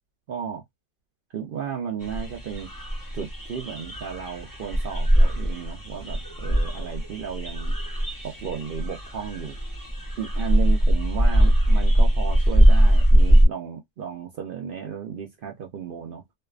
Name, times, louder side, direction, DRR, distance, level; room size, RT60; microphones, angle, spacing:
voice 1, 0.3-0.6 1.3-2.7 3.1-7.7 8.2-9.5 10.2-16.2, right 8 dB, 70° right, 0.5 m, -34 dB
sound 1, 2.0-13.4, right 1 dB, 20° left, 0.6 m, -21 dB
2.6 x 2.2 x 2.3 m
omnidirectional pair, 1.5 m